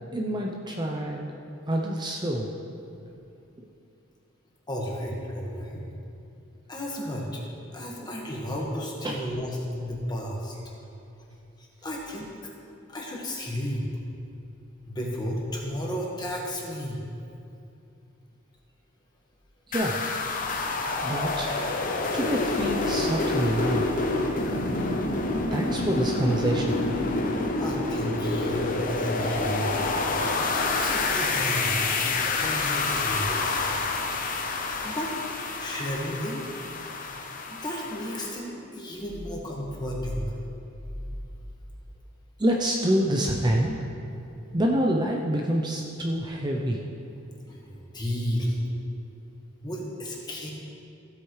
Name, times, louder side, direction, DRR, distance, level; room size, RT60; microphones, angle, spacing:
voice 1, 0.1-1.4 1.7-2.5 9.0-9.2 19.7-20.1 21.0-21.5 22.1-23.9 25.5-26.8 42.4-43.8 44.5-46.8, right 1 dB, 20° right, 0 dB, 0.6 m, -26 dB
voice 2, 4.7-5.8 6.7-7.4 7.7-10.5 11.6-12.5 12.9-13.9 14.8-17.0 27.6-29.8 30.8-33.7 34.8-35.1 35.6-36.4 37.5-40.3 47.5-48.6 49.6-50.5, equal, 20° left, -2 dB, 1.5 m, -33 dB
sound 1, 19.7-38.3, left 3 dB, 40° left, 0.8 m, -28 dB
15.5 x 8.2 x 3.2 m, 2.6 s
head